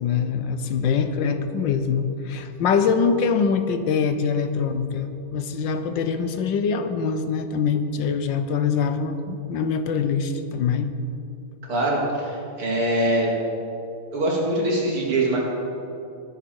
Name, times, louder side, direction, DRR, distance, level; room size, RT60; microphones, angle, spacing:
voice 1, 0.0-10.9, left 6 dB, 65° left, 9 dB, 1.4 m, -24 dB
voice 2, 11.7-13.3 14.1-15.4, right 1 dB, 75° right, -3 dB, 3.8 m, -23 dB
20.0 x 10.5 x 4.7 m, 2.7 s
omnidirectional pair, 2.4 m